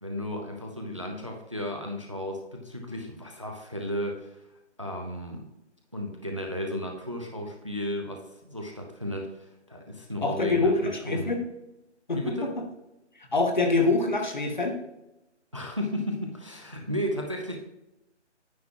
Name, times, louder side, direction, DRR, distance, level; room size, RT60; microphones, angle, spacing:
voice 1, 0.0-4.5 4.8-5.5 5.9-11.4 12.1-12.5 15.5-17.6, equal, 25° right, 3 dB, 0.6 m, -34 dB
voice 2, 10.2-11.4 12.1-12.2 13.3-14.8, left 3 dB, 40° left, 4 dB, 1.0 m, -25 dB
9.5 x 8.7 x 2.4 m, 0.93 s
hypercardioid pair, 180°, 36 cm